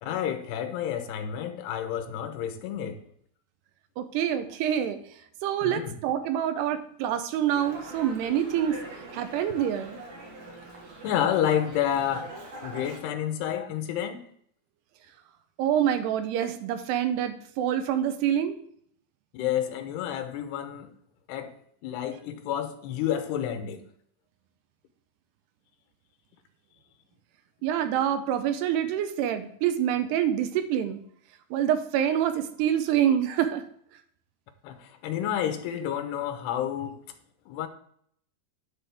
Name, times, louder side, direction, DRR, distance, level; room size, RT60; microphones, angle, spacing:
voice 1, 0.0-3.1 5.6-6.0 11.0-12.3 12.6-14.2 19.3-20.9 21.3-23.9 34.6-37.0 37.5-37.7, left 10 dB, 80° left, 3.0 m, -30 dB
voice 2, 4.0-5.0 5.4-8.8 9.1-10.0 15.6-18.5 27.6-31.0 31.5-33.6, right 10 dB, 85° right, 2.8 m, -26 dB
Dog, 7.5-13.0, right 2 dB, 50° right, 1.7 m, -42 dB
9.6 x 8.7 x 3.5 m
omnidirectional pair, 4.8 m